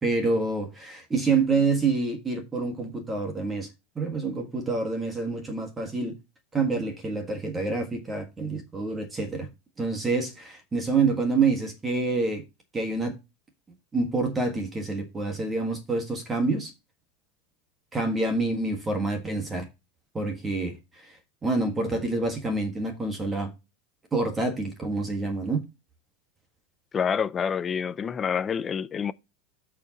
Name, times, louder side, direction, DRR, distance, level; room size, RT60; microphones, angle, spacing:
voice 1, 0.0-3.7 3.9-6.1 6.5-9.5 9.8-12.4 12.7-13.1 13.9-16.7 17.9-19.7 20.1-21.2 21.4-23.5 24.1-25.6, right 3 dB, 10° right, 1.6 m, -27 dB
voice 2, 26.9-29.1, left 7 dB, 15° left, 0.4 m, -27 dB
14.0 x 4.8 x 2.9 m
supercardioid pair, 175°, 0 cm